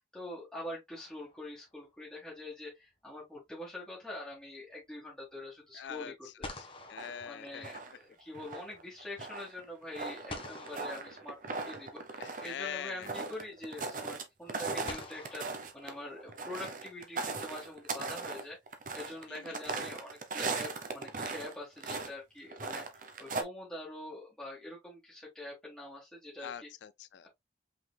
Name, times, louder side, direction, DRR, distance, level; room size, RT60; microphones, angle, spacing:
voice 1, 0.1-6.6 7.2-18.6 18.9-26.7, left 1 dB, 5° left, 1.5 m, -45 dB
sound 1, 0.9-1.8 5.9-6.0 6.4-8.1 10.3-11.9 13.2-13.3 14.9-16.5, left 2 dB, 30° left, 1.1 m, -48 dB
voice 2, 5.7-7.6 12.2-13.1 19.3-19.6 26.4-27.3, left 8 dB, 80° left, 0.3 m, -43 dB
sound 2, 7.0-8.0 8.3-14.2 14.5-21.5 21.8-22.1 22.5-23.4, right 3 dB, 50° right, 0.9 m, -39 dB
5.5 x 3.9 x 2.2 m
head